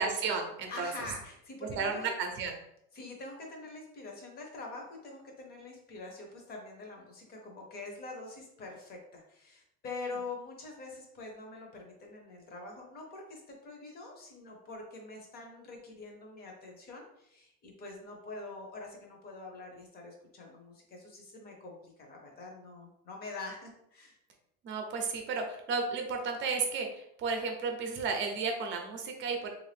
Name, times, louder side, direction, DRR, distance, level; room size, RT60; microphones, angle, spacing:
voice 1, 0.0-0.9 1.8-2.5 24.6-29.5, right 4 dB, 40° right, 3 dB, 0.7 m, -33 dB
voice 2, 0.7-2.1 2.9-24.2, left 3 dB, 30° left, 1 dB, 0.8 m, -45 dB
3.5 x 2.6 x 3.3 m, 0.78 s
cardioid pair, 175°, 30 cm